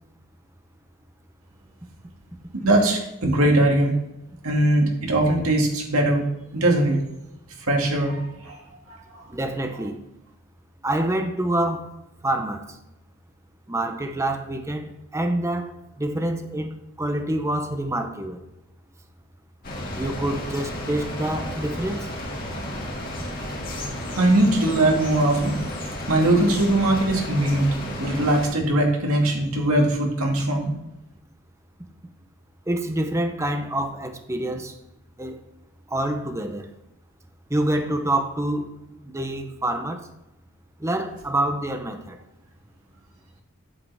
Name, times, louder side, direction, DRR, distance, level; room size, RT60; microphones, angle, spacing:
voice 1, 2.6-3.9 4.4-6.2 6.5-7.0 7.7-8.6 9.1-9.3 24.2-25.6 26.1-27.7 28.0-30.7, right 1 dB, 75° right, 0 dB, 2.3 m, -20 dB
voice 2, 9.3-10.0 10.8-11.9 12.2-12.8 13.7-18.4 19.9-22.1 32.7-34.8 35.2-35.4 35.9-36.7 37.5-40.1 40.8-42.2, right 1 dB, 15° right, 6 dB, 0.9 m, -27 dB
sound 1, 19.6-28.5, left 1 dB, 45° left, 2.2 m, -32 dB
8.7 x 8.6 x 3.5 m, 0.87 s
head